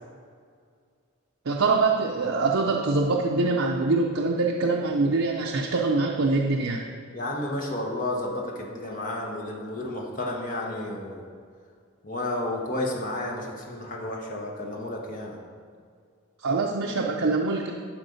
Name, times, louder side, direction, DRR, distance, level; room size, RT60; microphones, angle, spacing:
voice 1, 1.5-6.8 16.4-17.7, right 3 dB, 65° right, -1 dB, 0.6 m, -24 dB
voice 2, 7.1-11.2 12.0-15.4, left 1 dB, 35° left, -1 dB, 1.2 m, -31 dB
11.5 x 4.5 x 5.2 m, 2.2 s
head